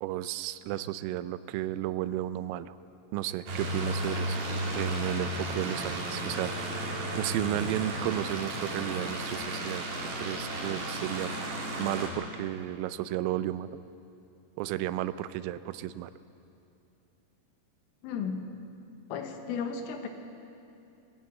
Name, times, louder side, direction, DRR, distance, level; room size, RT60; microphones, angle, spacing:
voice 1, 0.0-2.8 3.1-4.4 4.7-9.8 10.2-11.4 11.8-13.7 14.6-16.1, right 13 dB, 90° right, 14 dB, 3.3 m, -33 dB
sound 1, 3.5-12.1, right 1 dB, 60° right, 4.6 m, -34 dB
voice 2, 18.0-18.5 19.1-20.1, left 6 dB, 80° left, 5 dB, 3.8 m, -34 dB
21.0 x 15.0 x 8.5 m, 2.7 s
omnidirectional pair, 5.7 m